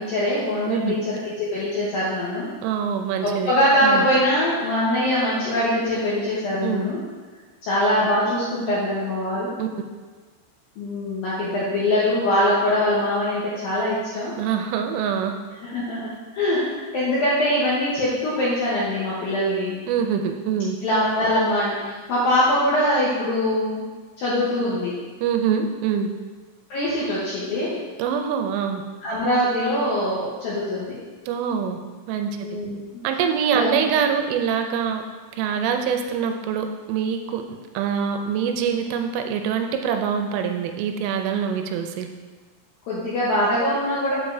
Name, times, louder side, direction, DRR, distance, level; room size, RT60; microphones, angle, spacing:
voice 1, 0.0-2.5 3.2-7.0 7.6-9.5 10.8-14.3 15.6-19.8 20.8-23.8 24.2-24.9 26.7-27.7 29.0-31.0 32.4-33.0 33.5-33.8 42.9-44.1, left 1 dB, 75° left, -8 dB, 2.1 m, -23 dB
voice 2, 0.7-1.0 2.6-3.6 3.8-4.1 6.6-6.9 9.6-9.7 14.4-15.4 19.9-20.8 25.2-26.1 28.0-28.8 31.3-31.8 32.1-32.6 33.0-35.0 35.3-37.4 37.7-42.1, right 7 dB, 85° right, 5 dB, 3.1 m, -24 dB
8.0 x 6.7 x 2.7 m, 1.4 s
omnidirectional pair, 5.7 m